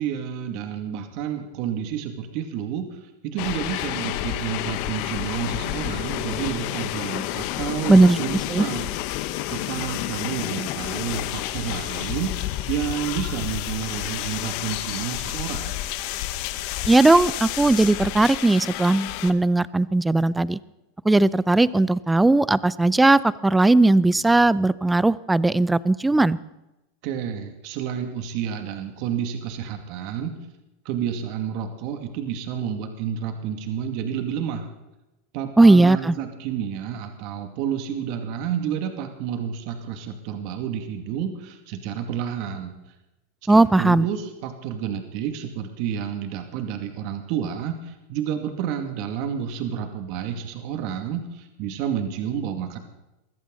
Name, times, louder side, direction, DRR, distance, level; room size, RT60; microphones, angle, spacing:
voice 1, 0.0-8.9 9.5-12.3 12.7-15.7 27.0-30.4 30.8-34.7 35.3-42.7 43.5-52.8, right 8 dB, 60° right, 6 dB, 2.4 m, -30 dB
sound 1, 3.4-19.3, left 14 dB, 60° left, 1.2 m, -30 dB
voice 2, 16.9-20.6 21.0-26.4 35.6-36.1 43.5-44.0, right 2 dB, 10° right, 19 dB, 0.6 m, -18 dB
22.5 x 15.0 x 4.1 m, 0.98 s
supercardioid pair, 115°, 0 cm